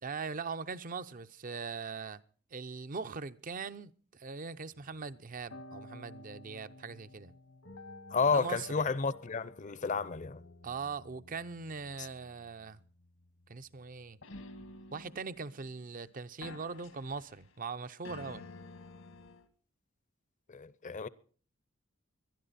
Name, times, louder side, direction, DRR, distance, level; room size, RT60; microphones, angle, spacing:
voice 1, 0.0-2.2 2.5-7.3 8.3-8.9 10.6-12.8 13.5-14.2 14.9-18.5, right 5 dB, 45° right, 0.6 m, -41 dB
sound 1, 4.7-16.0 16.4-17.7 18.0-19.5, left 2 dB, 85° left, 1.7 m, -52 dB
voice 2, 8.1-10.4 20.5-21.1, left 4 dB, 40° left, 0.6 m, -31 dB
21.5 x 12.0 x 4.1 m
head